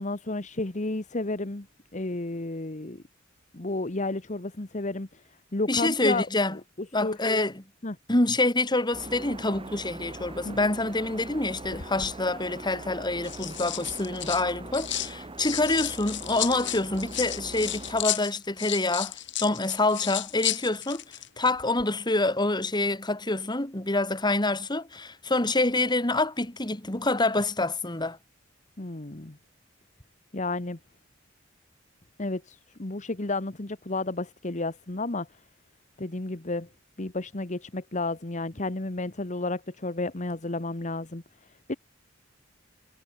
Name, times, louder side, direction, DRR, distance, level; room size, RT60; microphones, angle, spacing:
voice 1, 0.0-1.7 1.9-3.0 3.5-6.3 7.0-7.4 7.8-8.0 10.4-10.7 28.8-29.4 30.3-30.8 32.2-35.3 36.0-36.7 37.0-41.7, left 2 dB, 40° left, 1.3 m, -32 dB
voice 2, 5.7-6.6 6.9-7.6 8.1-21.0 21.4-28.2, left 2 dB, 20° left, 2.7 m, -26 dB
sound 1, 8.9-18.0, right 2 dB, 25° right, 1.5 m, -42 dB
sound 2, 11.6-12.1 13.0-15.1 15.4-21.3 21.6-21.8, left 13 dB, 65° left, 4.7 m, -33 dB
head